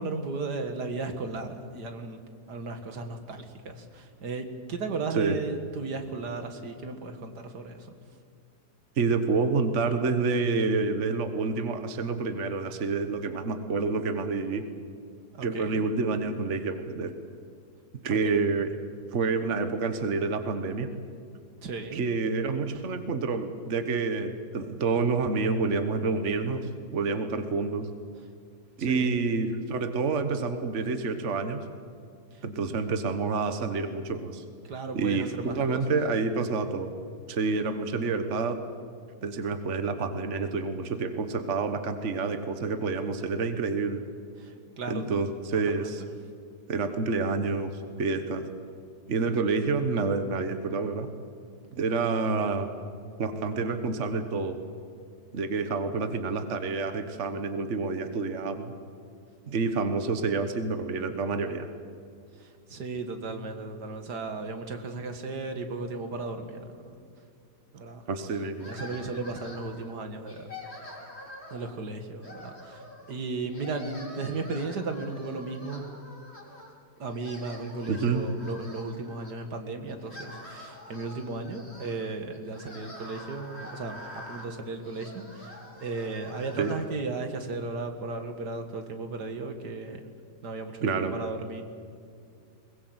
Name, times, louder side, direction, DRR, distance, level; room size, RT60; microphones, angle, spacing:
voice 1, 0.0-2.2 2.5-7.9 15.3-15.9 18.1-18.4 21.6-22.1 28.8-29.1 32.3-32.4 34.6-35.8 44.4-45.2 45.5-46.1 62.4-67.0 67.7-68.0 68.6-70.5 71.5-72.8 73.1-75.9 77.0-90.0 90.4-91.6, right 3 dB, 75° right, 7 dB, 2.3 m, -35 dB
voice 2, 9.0-14.6 15.4-17.1 18.0-18.7 19.1-20.9 21.9-26.6 26.9-27.9 28.8-31.6 32.4-34.4 34.9-36.9 37.3-38.6 39.2-44.1 44.9-46.0 46.7-47.7 48.0-48.5 49.1-51.1 51.7-52.7 53.2-54.6 55.3-58.7 59.5-61.7 68.1-68.7 77.9-78.2 86.6-86.7 90.8-91.1, right 4 dB, 45° right, 8 dB, 1.6 m, -28 dB
sound 1, 68.6-69.9 70.3-71.7 72.2-73.2 73.5-76.7 77.1-79.3 79.9-86.8, left 1 dB, 40° left, 4.3 m, -46 dB
22.0 x 20.5 x 8.0 m, 2.4 s
omnidirectional pair, 1.8 m